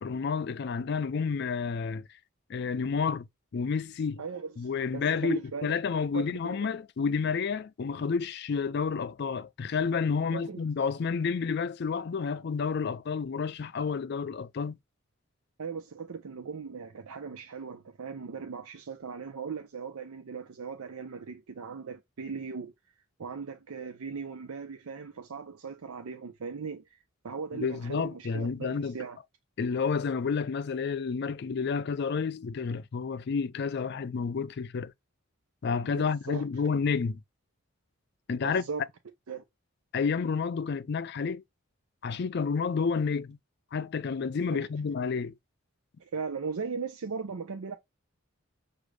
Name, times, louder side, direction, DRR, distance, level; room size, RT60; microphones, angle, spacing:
voice 1, 0.0-2.1 2.5-3.3 3.5-4.2 4.6-14.8 27.5-29.0 29.6-34.9 35.6-37.2 38.3-38.6 39.9-41.4 42.0-43.4 43.7-45.3, left 5 dB, 50° left, 0.4 m, -30 dB
voice 2, 4.2-5.8 6.1-6.7 10.3-10.6 15.6-22.7 23.2-29.2 35.8-36.4 38.4-38.8 39.3-39.4 44.5-44.7 46.0-47.8, right 5 dB, 85° right, 0.5 m, -38 dB
6.2 x 2.5 x 3.2 m
head